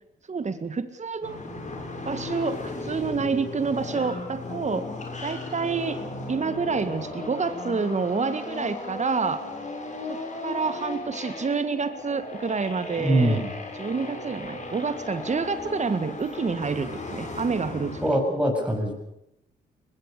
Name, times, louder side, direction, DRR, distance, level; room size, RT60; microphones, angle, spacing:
voice 1, 0.3-1.4 2.1-4.9 5.2-6.0 6.3-9.4 10.1-13.4 13.8-18.0, right 4 dB, 35° right, 12 dB, 1.9 m, -28 dB
sound 1, 1.2-18.1, left 2 dB, 35° left, 7.1 m, -36 dB
voice 2, 13.0-13.5 18.0-18.9, right 1 dB, 5° right, 0 dB, 7.7 m, -23 dB
23.5 x 21.0 x 6.9 m, 0.82 s
hypercardioid pair, 50°, 21 cm